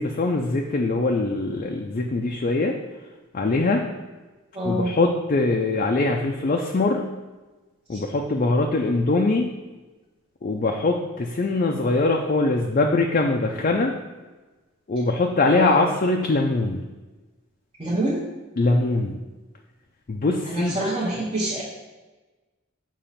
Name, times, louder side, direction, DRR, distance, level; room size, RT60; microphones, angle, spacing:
voice 1, 0.0-2.7 3.3-3.8 4.6-7.0 7.9-9.5 10.4-13.9 14.9-16.8 18.6-19.2 20.1-20.8, left 2 dB, 40° left, 2 dB, 0.4 m, -22 dB
voice 2, 4.5-4.9 7.9-8.0 15.5-15.8 17.8-18.2 20.5-21.6, right 1 dB, 25° right, -7 dB, 0.9 m, -26 dB
6.8 x 3.0 x 5.7 m, 1.2 s
head